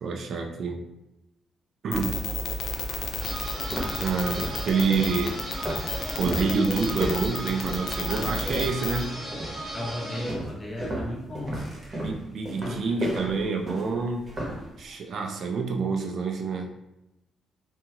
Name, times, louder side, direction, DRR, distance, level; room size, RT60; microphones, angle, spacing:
voice 1, 0.0-0.8 1.8-2.3 4.0-5.4 6.2-9.2 11.9-14.2 14.8-16.7, right 4 dB, 60° right, 2 dB, 0.4 m, -27 dB
sound 1, 1.9-9.0, left 4 dB, 80° left, 0.4 m, -31 dB
sound 2, 2.9-3.0 3.5-8.9 9.3-9.7 10.3-14.7, right 1 dB, 35° right, 1.0 m, -34 dB
sound 3, 3.2-10.3, equal, 10° right, 1.2 m, -36 dB
voice 2, 9.7-11.6 12.6-12.9, left 1 dB, 25° left, -2 dB, 0.8 m, -35 dB
2.6 x 2.3 x 2.8 m, 0.91 s
cardioid pair, 90°, 0 cm